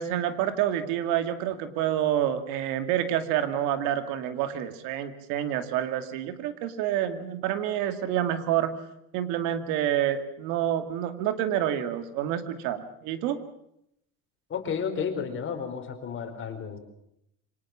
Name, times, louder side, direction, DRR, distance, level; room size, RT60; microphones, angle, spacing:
voice 1, 0.0-8.7 9.1-13.4, right 11 dB, 80° right, 10 dB, 2.3 m, -28 dB
voice 2, 14.5-16.8, left 6 dB, 40° left, 5 dB, 4.6 m, -32 dB
24.5 x 19.0 x 7.4 m, 0.77 s
cardioid pair, 120°, 30 cm